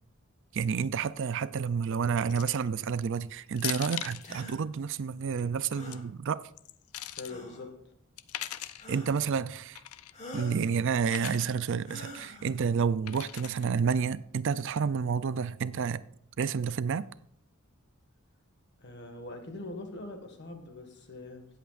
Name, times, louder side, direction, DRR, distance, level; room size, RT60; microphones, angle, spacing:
voice 1, 0.5-6.4 8.9-9.8 10.3-16.0 16.4-17.1, right 6 dB, 60° right, 0.4 m, -30 dB
sound 1, 2.3-2.7 3.6-4.2 5.6-6.0 6.6-7.3 8.2-8.9 9.8-10.1 11.1-11.5 13.1-13.7, left 13 dB, 85° left, 0.5 m, -39 dB
sound 2, 4.2-4.6 5.7-6.1 7.2-7.7 8.8-9.3 10.1-10.7 11.8-12.5, left 1 dB, 35° left, 2.2 m, -45 dB
voice 2, 7.2-7.9 18.8-21.5, left 2 dB, 55° left, 1.7 m, -43 dB
17.5 x 8.0 x 2.5 m
head